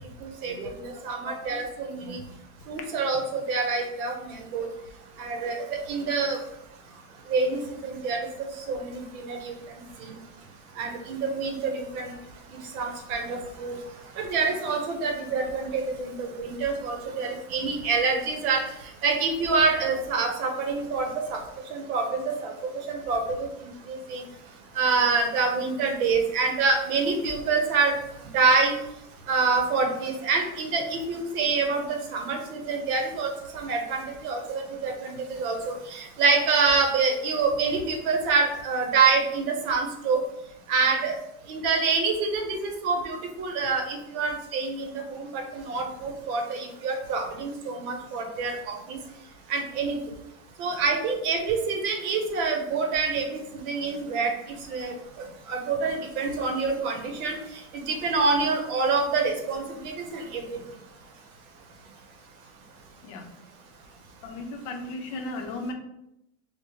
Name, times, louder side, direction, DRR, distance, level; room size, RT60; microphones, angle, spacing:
voice 1, 0.2-2.2 2.7-4.7 5.2-6.4 7.3-9.5 10.0-10.2 10.8-12.1 12.7-13.8 14.2-18.6 19.0-21.4 21.7-22.5 22.9-23.5 23.9-24.2 24.7-28.0 28.3-28.7 29.3-40.2 40.7-41.2 41.5-49.0 49.5-50.0 50.6-54.3 54.7-57.4 57.7-60.4, right 4 dB, 65° right, 4 dB, 0.9 m, -26 dB
voice 2, 64.2-65.7, left 2 dB, 55° left, 3 dB, 0.7 m, -35 dB
4.7 x 2.1 x 2.8 m, 0.84 s
supercardioid pair, 150°, 46 cm